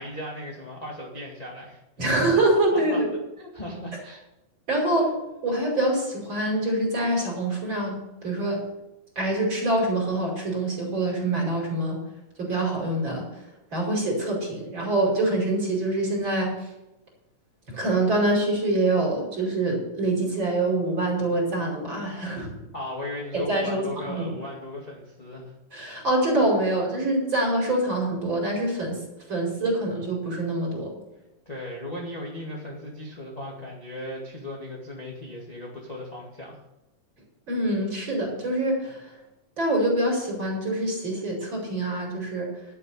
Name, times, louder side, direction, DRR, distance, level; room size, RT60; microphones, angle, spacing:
voice 1, 0.0-1.8 2.7-3.0 3.4-4.2 4.9-5.0 22.7-25.5 31.5-36.6, left 1 dB, 15° left, -3 dB, 1.8 m, -37 dB
voice 2, 2.0-3.1 4.7-5.1 5.4-8.6 9.2-12.0 12.4-13.4 13.7-16.7 17.7-22.5 23.3-24.4 25.7-29.0 29.3-31.0 37.5-39.1 39.6-42.5, right 1 dB, 35° right, -2 dB, 5.8 m, -25 dB
12.0 x 9.9 x 5.6 m, 0.95 s
omnidirectional pair, 3.7 m